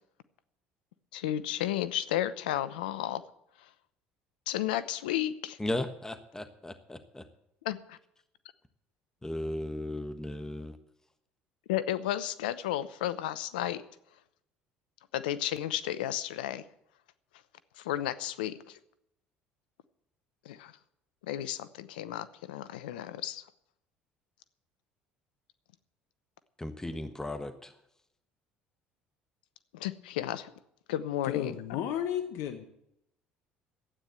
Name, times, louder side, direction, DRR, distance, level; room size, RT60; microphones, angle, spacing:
voice 1, 1.1-3.2 4.5-5.6 7.6-8.0 11.7-13.8 15.1-16.6 17.8-18.8 20.4-20.7 21.3-23.4 29.7-30.5 30.9-31.5, left 12 dB, 85° left, 15 dB, 0.8 m, -33 dB
voice 2, 5.6-7.2 9.2-10.8 26.6-27.7, left 1 dB, 10° left, 9 dB, 1.3 m, -36 dB
voice 3, 31.2-32.7, left 10 dB, 70° left, 8 dB, 1.1 m, -33 dB
12.5 x 9.2 x 8.1 m, 0.78 s
hypercardioid pair, 70°, 5 cm